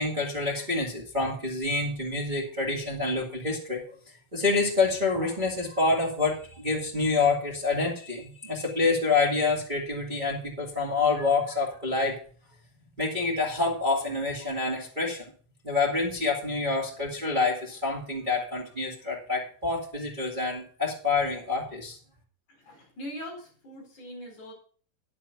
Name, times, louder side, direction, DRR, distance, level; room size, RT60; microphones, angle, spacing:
voice 1, 0.0-3.9 4.3-12.2 13.0-15.2 15.6-21.9, left 3 dB, 60° right, -3 dB, 0.5 m, -27 dB
voice 2, 22.5-24.5, equal, 40° left, 0 dB, 4.9 m, -42 dB
10.5 x 7.6 x 5.9 m, 0.43 s
omnidirectional pair, 5.6 m